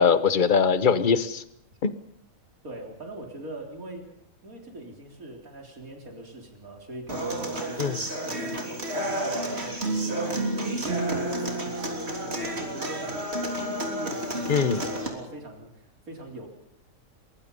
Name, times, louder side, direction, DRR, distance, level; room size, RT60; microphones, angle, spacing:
voice 1, 0.0-1.4 1.8-1.9 7.8-8.0 14.5-14.8, left 6 dB, 40° left, 13 dB, 1.2 m, -21 dB
voice 2, 2.6-4.1 4.4-10.4 10.8-13.2 13.6-16.5, right 2 dB, 85° right, 2 dB, 4.3 m, -41 dB
Human voice / Acoustic guitar, 7.1-15.1, right 1 dB, 50° right, 3.7 m, -30 dB
23.5 x 23.0 x 5.5 m, 0.73 s
omnidirectional pair, 1.4 m